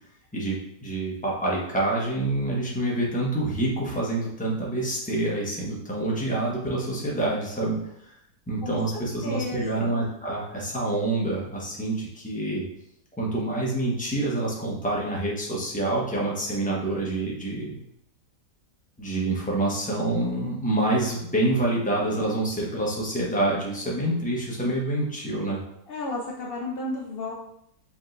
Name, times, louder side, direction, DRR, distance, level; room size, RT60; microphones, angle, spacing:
voice 1, 0.3-7.8 8.5-12.6 13.2-17.8 19.0-25.6, right 2 dB, 5° left, -4 dB, 0.8 m, -27 dB
voice 2, 8.6-9.9 25.9-27.3, left 2 dB, 85° left, -1 dB, 0.5 m, -33 dB
5.2 x 3.9 x 2.6 m, 0.76 s
omnidirectional pair, 1.8 m